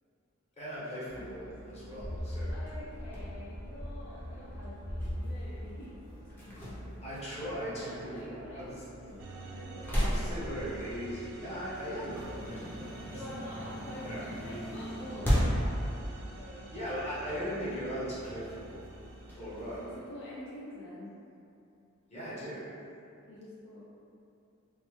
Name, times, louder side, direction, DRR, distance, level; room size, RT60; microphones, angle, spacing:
voice 1, 0.6-2.6 6.4-6.5 7.0-8.8 10.0-13.2 14.0-14.3 16.6-18.9 19.4-19.8 22.1-22.7, equal, 30° left, -10 dB, 0.9 m, -39 dB
sound 1, 1.1-19.8, equal, 10° left, 0.6 m, -37 dB
voice 2, 2.5-6.1 6.4-6.6 7.8-10.1 13.0-16.7 19.8-21.2 23.2-23.9, left 1 dB, 65° left, -7 dB, 0.4 m, -47 dB
sound 2, 9.2-20.0, right 3 dB, 75° right, 0.3 m, -50 dB
3.1 x 2.1 x 3.0 m, 2.6 s
head